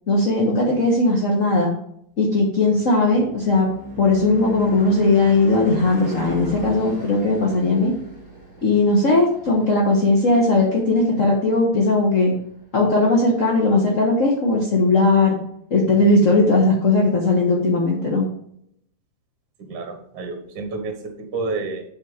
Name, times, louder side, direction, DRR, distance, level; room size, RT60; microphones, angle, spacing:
voice 1, 0.1-1.7 2.2-3.7 4.0-7.9 8.6-12.3 12.7-15.4 15.7-18.2, left 2 dB, 45° left, -3 dB, 1.0 m, -18 dB
Car passing by / Truck / Engine, 2.6-11.3, right 4 dB, 5° right, 3.1 m, -34 dB
voice 2, 19.6-21.8, right 3 dB, 50° right, 5 dB, 1.5 m, -30 dB
7.9 x 5.7 x 4.9 m, 0.71 s
omnidirectional pair, 3.3 m